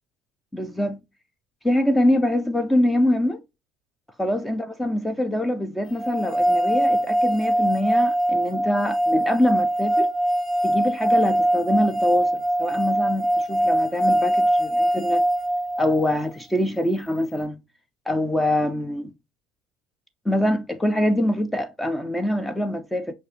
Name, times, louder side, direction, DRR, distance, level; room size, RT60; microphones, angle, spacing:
voice 1, 0.5-1.0 1.6-3.4 4.2-10.1 10.6-15.2 15.8-17.6 18.1-19.1 20.3-23.1, left 1 dB, 5° left, 0.3 m, -24 dB
sound 1, 6.0-16.1, right 1 dB, 30° left, 1.2 m, -22 dB
6.3 x 2.5 x 2.4 m
cardioid pair, 160°, 0 cm